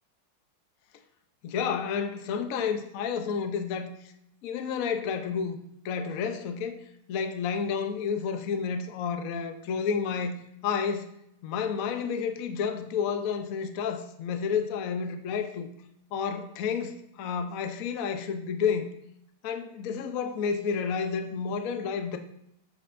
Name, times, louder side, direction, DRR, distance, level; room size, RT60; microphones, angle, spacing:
voice 1, 1.4-3.9 4.4-6.8 7.1-11.1 11.4-15.7 16.1-18.9 19.4-22.2, left 6 dB, 65° left, 7 dB, 0.8 m, -30 dB
12.0 x 7.7 x 2.6 m, 0.78 s
omnidirectional pair, 2.3 m